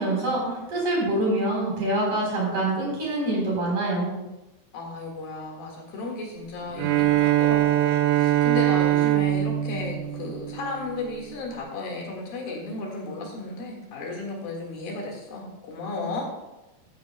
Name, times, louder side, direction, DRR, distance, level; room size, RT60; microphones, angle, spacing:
voice 1, 0.0-4.1, right 1 dB, 50° right, -3 dB, 5.1 m, -25 dB
voice 2, 4.7-16.3, left 3 dB, 70° left, -1 dB, 3.5 m, -34 dB
Bowed string instrument, 6.7-11.1, right 14 dB, 85° right, 1.8 m, -22 dB
14.5 x 12.5 x 2.2 m, 1.0 s
omnidirectional pair, 4.5 m